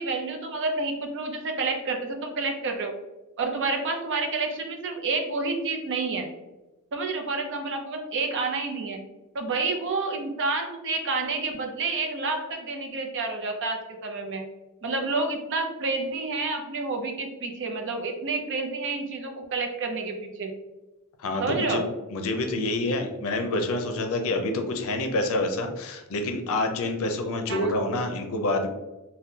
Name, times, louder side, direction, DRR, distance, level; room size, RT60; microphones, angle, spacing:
voice 1, 0.0-2.9 3.4-6.3 6.9-9.0 9.3-14.4 14.8-20.5 21.4-21.8 27.5-27.7, right 3 dB, 55° right, 4 dB, 0.6 m, -29 dB
voice 2, 21.2-28.7, left 2 dB, 65° left, 5 dB, 0.5 m, -27 dB
3.6 x 2.2 x 2.7 m, 1.1 s
head